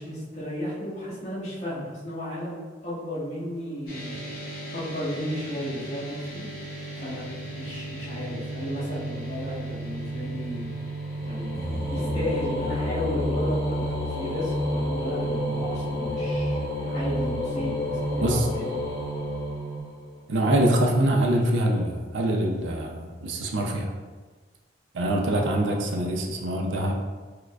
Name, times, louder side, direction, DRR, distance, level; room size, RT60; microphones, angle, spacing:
voice 1, 0.0-4.2 4.7-6.4 6.9-7.3 7.6-10.7 11.2-18.6, equal, 40° left, -9 dB, 1.2 m, -34 dB
sound 1, 3.9-19.8, right 3 dB, 55° left, 0.7 m, -36 dB
sound 2, 9.3-20.2, left 1 dB, 20° left, 0.6 m, -30 dB
voice 2, 20.3-23.9 24.9-26.9, right 1 dB, 75° right, 2 dB, 0.4 m, -24 dB
4.5 x 2.1 x 2.3 m, 1.4 s
head